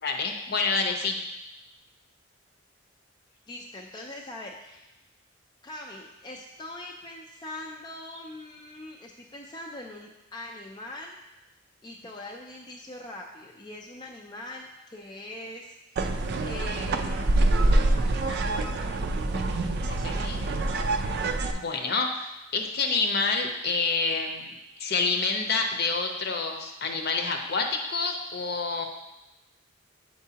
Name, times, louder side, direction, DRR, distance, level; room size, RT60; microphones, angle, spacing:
voice 1, 0.0-1.2 20.0-20.4 21.5-22.3 22.5-24.5 24.8-28.9, left 4 dB, 55° left, 4 dB, 0.7 m, -28 dB
voice 2, 3.5-4.9 5.6-11.2 11.8-16.0 16.4-17.4 18.3-19.0, left 1 dB, 20° left, 0 dB, 0.4 m, -42 dB
sound 1, 16.0-21.5, right 2 dB, 55° right, 0.4 m, -25 dB
8.1 x 4.5 x 2.8 m, 0.98 s
head